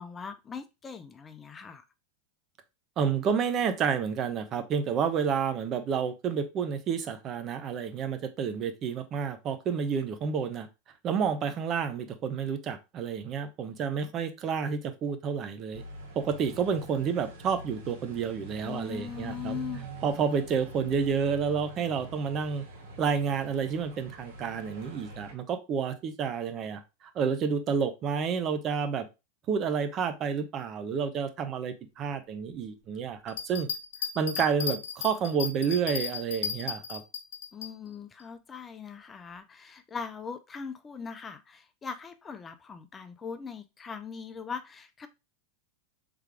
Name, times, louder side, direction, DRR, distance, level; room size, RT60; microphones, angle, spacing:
voice 1, 0.0-1.8 18.6-19.9 37.5-45.1, left 6 dB, 20° left, 0.4 m, -40 dB
voice 2, 3.0-10.7 11.0-15.8 16.1-19.6 20.0-22.6 23.0-29.1 29.5-33.7 34.1-37.0, right 6 dB, 35° right, 0.7 m, -30 dB
sound 1, 15.7-25.3, right 2 dB, 75° right, 2.0 m, -45 dB
sound 2, 33.3-37.7, left 7 dB, 80° left, 0.8 m, -35 dB
3.5 x 3.4 x 3.3 m
hypercardioid pair, 120°, 0 cm